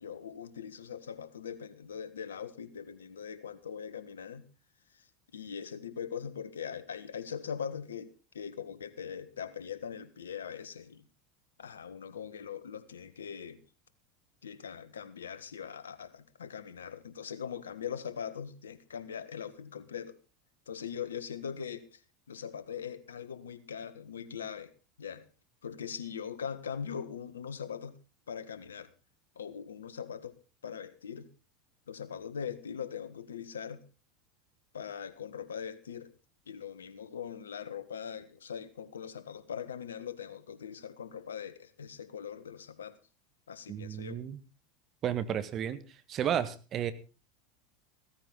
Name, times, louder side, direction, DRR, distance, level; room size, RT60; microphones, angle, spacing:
voice 1, 0.0-4.5 4.9-5.1 5.3-11.1 11.6-13.6 14.4-20.2 20.7-22.0 22.3-24.7 25.0-25.3 25.6-28.0 28.3-28.9 29.3-30.4 30.6-31.3 31.9-33.8 34.7-36.1 36.5-43.0 43.5-44.2, left 7 dB, 80° left, 13 dB, 1.5 m, -41 dB
voice 2, 43.7-44.4 45.0-45.8 46.1-46.9, right 9 dB, 40° right, 13 dB, 1.7 m, -32 dB
16.0 x 14.5 x 3.9 m, 0.33 s
hypercardioid pair, 85°, 0 cm